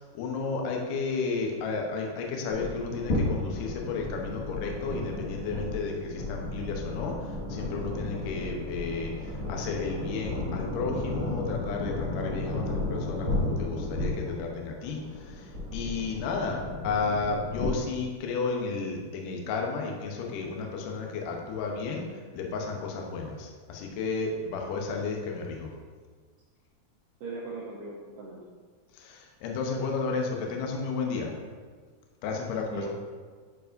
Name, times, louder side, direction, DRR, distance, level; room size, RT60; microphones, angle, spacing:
voice 1, 0.1-22.1 22.3-25.7 28.9-31.3 32.2-32.9, left 4 dB, 80° left, 1 dB, 1.9 m, -33 dB
sound 1, 2.5-17.7, left 2 dB, 55° left, 1.5 m, -33 dB
voice 2, 27.2-28.4 32.7-32.9, right 3 dB, 80° right, -4 dB, 1.9 m, -38 dB
10.0 x 4.8 x 2.5 m, 1.5 s
omnidirectional pair, 4.8 m